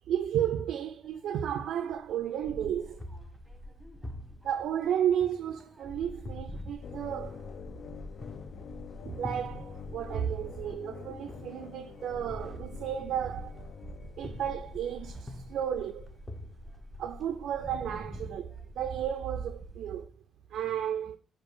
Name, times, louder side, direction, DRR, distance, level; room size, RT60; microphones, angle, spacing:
voice 1, 0.1-3.0 4.4-7.4 9.0-13.6 14.2-16.2 17.0-20.1 20.5-21.2, right 9 dB, 75° right, 0.3 m, -33 dB
sound 1, 1.0-20.0, equal, ahead, 0.9 m, -47 dB
sound 2, 3.0-5.8 6.2-10.0 10.3-13.9 14.2-14.8 15.1-17.5, left 1 dB, 20° left, 0.6 m, -46 dB
sound 3, 6.8-14.9, left 7 dB, 60° left, 0.3 m, -46 dB
4.4 x 2.4 x 4.8 m
cardioid pair, 80°, 0 cm